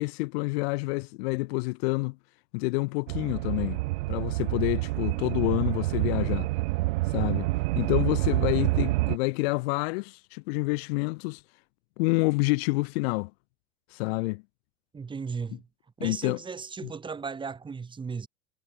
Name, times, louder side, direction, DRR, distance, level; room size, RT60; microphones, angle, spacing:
voice 1, 0.0-2.2 2.5-3.8 4.1-6.5 7.1-7.5 7.8-11.4 12.0-13.3 13.9-14.4 15.5-15.6 16.0-16.4 16.8-16.9, left 26 dB, 70° left, 0.5 m, -28 dB
sound 1, 3.1-9.2, right 21 dB, 80° right, 1.0 m, -27 dB
voice 2, 14.9-15.7 16.0-18.3, right 5 dB, 15° right, 2.4 m, -36 dB
supercardioid pair, 145°, 32 cm